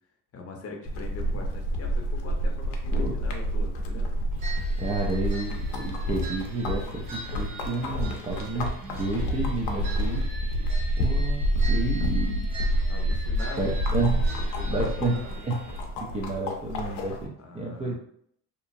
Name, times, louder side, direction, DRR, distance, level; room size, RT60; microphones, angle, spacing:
voice 1, 0.3-4.1 12.9-13.7 14.5-15.3 17.4-17.9, left 3 dB, 35° left, 1 dB, 0.7 m, -42 dB
sound 1, 0.9-17.3, equal, 90° left, 0.6 m, -28 dB
sound 2, 4.4-15.8, right 3 dB, 55° right, 0.8 m, -43 dB
voice 2, 4.8-10.3 11.0-12.5 13.6-15.2 15.4-15.6 16.0-17.9, right 2 dB, 20° right, -3 dB, 0.3 m, -31 dB
2.8 x 2.3 x 2.5 m, 0.67 s
cardioid pair, 115°, 40 cm